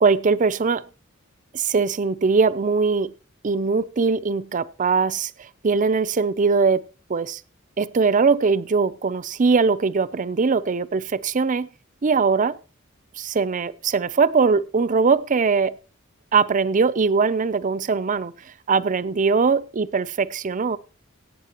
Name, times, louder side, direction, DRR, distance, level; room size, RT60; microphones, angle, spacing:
voice 1, 0.0-0.8 1.5-3.1 3.4-6.8 7.1-7.4 7.8-11.7 12.0-12.6 13.2-15.8 16.3-18.3 18.7-20.8, right 4 dB, 40° right, 0.5 m, -21 dB
22.0 x 9.1 x 2.9 m
head